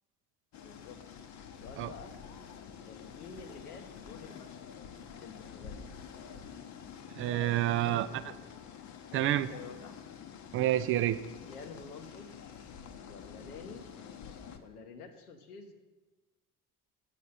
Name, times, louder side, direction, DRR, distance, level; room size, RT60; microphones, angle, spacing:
sound 1, 0.5-14.6, left 7 dB, 40° left, 0.8 m, -48 dB
voice 1, 0.6-1.0 1.4-2.2 2.8-4.7 5.2-5.8 7.8-8.5 9.1-10.1 11.2-12.3 13.1-13.9 14.6-15.7, left 5 dB, 75° left, 6 dB, 1.0 m, -49 dB
voice 2, 7.2-8.1 9.1-9.5 10.5-11.2, right 13 dB, 30° right, 14 dB, 0.4 m, -28 dB
8.4 x 6.9 x 5.4 m, 1.2 s
figure-of-eight pair, 60°, 45 cm